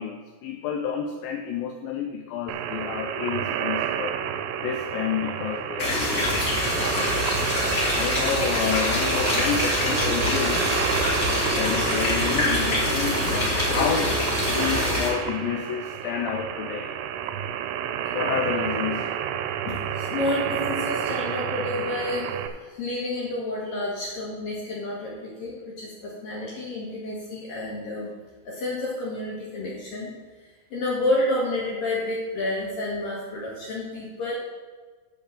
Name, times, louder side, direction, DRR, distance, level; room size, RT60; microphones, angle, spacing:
voice 1, 0.0-4.2 4.6-7.2 7.9-10.7 11.5-14.2 14.5-16.9 18.1-19.1, left 7 dB, 85° left, 4 dB, 2.0 m, -30 dB
sound 1, 2.5-22.5, right 9 dB, 80° right, 2.4 m, -29 dB
sound 2, 5.8-15.1, left 2 dB, 25° left, 2.2 m, -25 dB
voice 2, 19.7-28.1 28.4-30.1 30.7-34.4, left 2 dB, 60° left, -5 dB, 3.0 m, -30 dB
10.5 x 4.6 x 7.2 m, 1.4 s
omnidirectional pair, 4.8 m